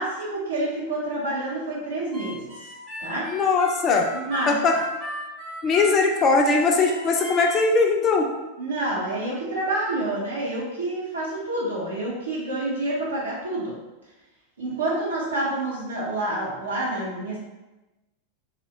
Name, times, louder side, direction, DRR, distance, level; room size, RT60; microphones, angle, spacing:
voice 1, 0.0-2.7 3.0-3.3 4.1-4.5 8.6-13.7 14.6-17.4, right 2 dB, 75° right, -6 dB, 0.6 m, -28 dB
Harmonica, 2.1-7.7, left 1 dB, 20° right, 0.6 m, -36 dB
voice 2, 3.3-4.1 4.5-4.8 5.6-8.3, left 4 dB, 30° left, 2 dB, 0.3 m, -20 dB
2.5 x 2.1 x 2.6 m, 1.1 s
figure-of-eight pair, 90°, 0 cm